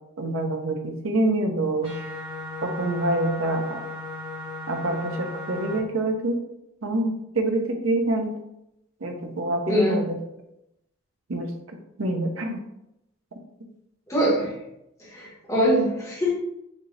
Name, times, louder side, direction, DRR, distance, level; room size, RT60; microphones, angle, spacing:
voice 1, 0.2-1.9 2.6-3.8 4.7-6.4 6.8-8.3 9.0-10.2 11.3-11.5 12.0-12.6, right 2 dB, 80° right, 3 dB, 0.8 m, -26 dB
sound 1, 1.8-5.8, left 2 dB, 25° right, 1.4 m, -36 dB
voice 2, 9.7-10.0 14.1-14.5 15.0-16.3, equal, 15° left, -6 dB, 1.4 m, -23 dB
5.2 x 2.7 x 3.2 m, 0.84 s
head